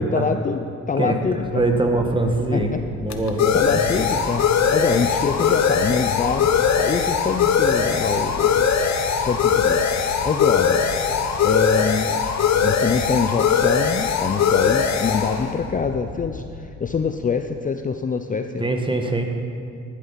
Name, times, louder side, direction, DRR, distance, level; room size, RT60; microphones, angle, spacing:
voice 1, 0.0-1.6 2.5-2.8 3.5-4.5 4.7-6.5 6.8-8.7 9.2-10.8 11.4-12.3 12.6-18.6, left 5 dB, 25° left, 7 dB, 0.5 m, -25 dB
sound 1, 1.5-16.9, left 6 dB, 65° left, 1.0 m, -21 dB
voice 2, 1.5-2.7 3.0-3.6 4.9-5.0 18.6-19.4, right 2 dB, 15° right, 4 dB, 1.3 m, -22 dB
11.5 x 10.0 x 5.8 m, 2.4 s
cardioid pair, 90°, 30 cm